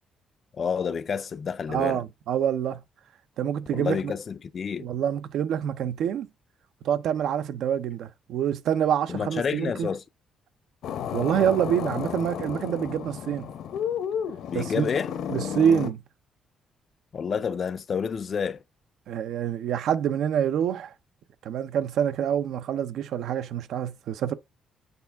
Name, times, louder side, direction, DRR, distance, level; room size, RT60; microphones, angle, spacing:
voice 1, 0.5-2.0 3.7-4.9 9.1-10.0 14.5-15.1 17.1-18.6, left 6 dB, 35° left, 0.4 m, -29 dB
voice 2, 1.7-2.8 3.4-4.1 4.8-6.3 6.8-9.9 11.1-13.5 14.5-14.9 15.3-16.0 19.1-20.9 21.4-24.3, right 9 dB, 65° right, 0.6 m, -26 dB
sound 1, 10.8-15.9, left 8 dB, 65° left, 0.8 m, -32 dB
6.8 x 4.5 x 3.4 m
cardioid pair, 165°, 0 cm